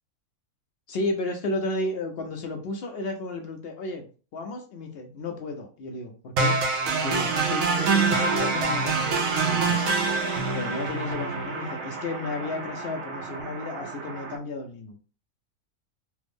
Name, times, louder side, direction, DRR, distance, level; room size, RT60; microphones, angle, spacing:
voice 1, 0.9-6.6 7.0-9.8 10.5-15.0, left 2 dB, 70° left, 4 dB, 0.5 m, -33 dB
sound 1, 6.4-14.4, right 4 dB, 70° right, 1.0 m, -26 dB
3.3 x 2.0 x 3.4 m, 0.37 s
omnidirectional pair, 1.6 m